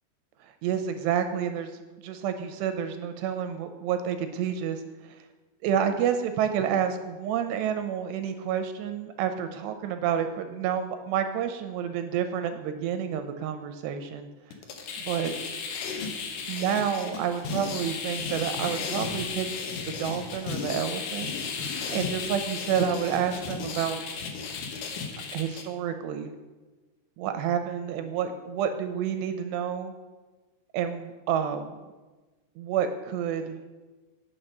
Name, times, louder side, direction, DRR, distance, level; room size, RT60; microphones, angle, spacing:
voice 1, 0.6-1.7 2.0-4.8 5.6-14.3 15.1-15.3 16.5-19.5 19.8-24.0 25.3-26.3 27.2-29.9 30.7-31.7 32.6-33.5, right 8 dB, 80° right, 8 dB, 2.5 m, -29 dB
sound 1, 14.5-25.6, left 5 dB, 75° left, 2.1 m, -34 dB
9.2 x 5.9 x 6.5 m, 1.2 s
omnidirectional pair, 5.2 m